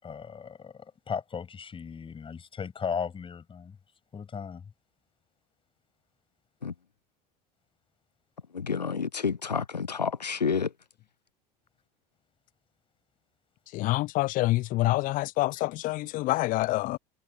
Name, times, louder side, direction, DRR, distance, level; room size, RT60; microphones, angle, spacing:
voice 1, 0.0-3.8 4.1-4.7, left 6 dB, 25° left, 7.8 m, -36 dB
voice 2, 8.5-10.7, left 6 dB, 85° left, 0.7 m, -29 dB
voice 3, 13.7-17.0, left 18 dB, 40° left, 0.7 m, -27 dB
figure-of-eight pair, 70°, 21 cm